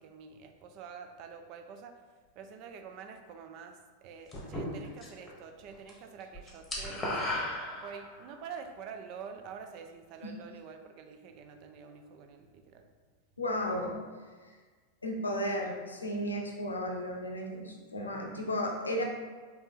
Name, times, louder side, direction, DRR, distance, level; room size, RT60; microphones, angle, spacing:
voice 1, 0.0-1.9 2.4-7.4 7.7-12.9, right 6 dB, 40° right, 6 dB, 0.4 m, -47 dB
sound 1, 4.3-5.3 5.6-5.9 6.2-8.3, left 1 dB, 15° left, 1.0 m, -35 dB
voice 2, 13.4-13.9 14.5-14.6 15.0-19.0, equal, 80° left, 1 dB, 0.6 m, -34 dB
3.9 x 2.8 x 3.6 m, 1.5 s
figure-of-eight pair, 90°, 0 cm